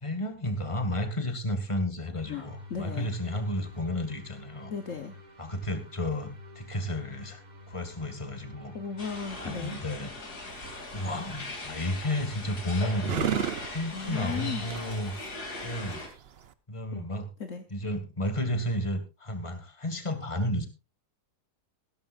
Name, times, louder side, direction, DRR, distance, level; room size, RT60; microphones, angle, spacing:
voice 1, 0.0-4.7 5.4-7.4 7.7-8.7 9.4-10.1 10.9-15.1 15.6-16.0 16.7-17.3 17.7-20.7, left 1 dB, 20° left, 8 dB, 1.9 m, -32 dB
sound 1, 2.1-9.4, left 1 dB, 30° right, 1.4 m, -48 dB
voice 2, 2.3-3.1 4.7-5.2 8.7-9.8 13.9-14.7 16.9-17.7, left 6 dB, 55° left, 6 dB, 1.4 m, -36 dB
sound 2, 9.0-16.1, left 3 dB, 70° left, 3.4 m, -40 dB
sound 3, 10.5-16.5, right 9 dB, 50° right, 0.8 m, -36 dB
16.0 x 13.5 x 2.5 m, 0.28 s
omnidirectional pair, 1.7 m